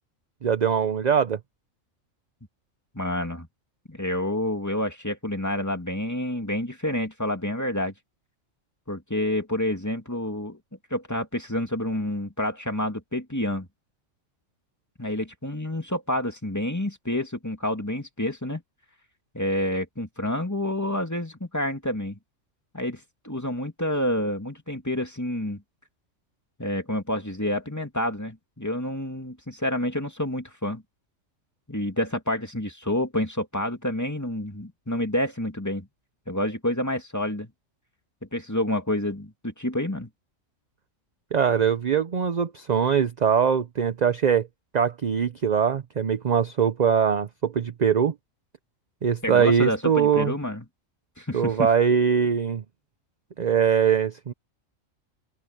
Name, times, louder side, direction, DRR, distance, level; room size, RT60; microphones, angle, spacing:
voice 1, 0.4-1.4 41.3-44.5 44.7-48.1 49.0-50.3 51.3-52.6 53.4-54.3, right 7 dB, 40° right, 0.7 m, -22 dB
voice 2, 2.9-3.5 3.9-7.9 8.9-10.6 10.9-13.7 15.0-18.6 19.3-22.2 22.7-25.6 26.6-30.8 31.7-35.9 36.3-37.5 38.3-40.1 49.2-50.7 51.2-51.7, left 1 dB, 15° left, 2.5 m, -28 dB
open air
omnidirectional pair, 1.4 m